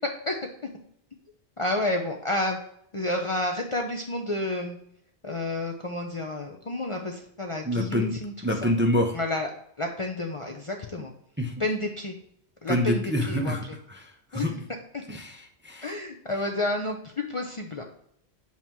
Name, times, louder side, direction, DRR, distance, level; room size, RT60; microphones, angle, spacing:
voice 1, 1.6-2.6 2.9-4.8 5.2-8.7 9.1-9.5 9.8-11.1 11.6-12.1 12.6-13.6 14.3-14.6 15.8-17.8, left 2 dB, 40° left, 1 dB, 0.5 m, -30 dB
voice 2, 7.6-8.2 8.4-9.2 11.4-11.5 12.7-14.5 15.1-16.0, left 1 dB, 15° right, 2 dB, 0.6 m, -27 dB
7.4 x 2.9 x 4.4 m, 0.72 s
omnidirectional pair, 1.1 m